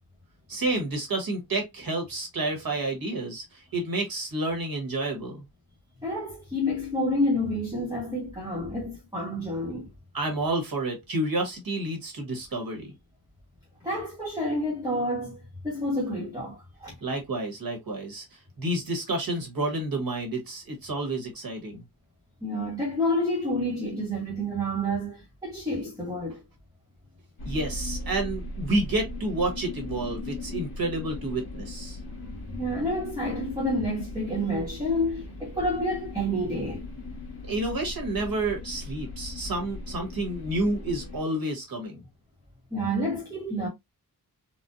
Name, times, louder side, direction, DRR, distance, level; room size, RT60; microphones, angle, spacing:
voice 1, 0.5-5.4 10.1-12.9 17.0-18.2 18.6-21.8 27.4-32.0 37.5-42.0, right 2 dB, 60° right, 1.4 m, -30 dB
voice 2, 6.0-9.9 13.8-16.9 22.4-26.4 32.6-36.9 42.7-43.7, equal, 10° right, 1.1 m, -29 dB
sound 1, 27.4-41.2, left 2 dB, 65° left, 1.6 m, -38 dB
4.1 x 2.4 x 2.5 m
wide cardioid pair, 170°, 39 cm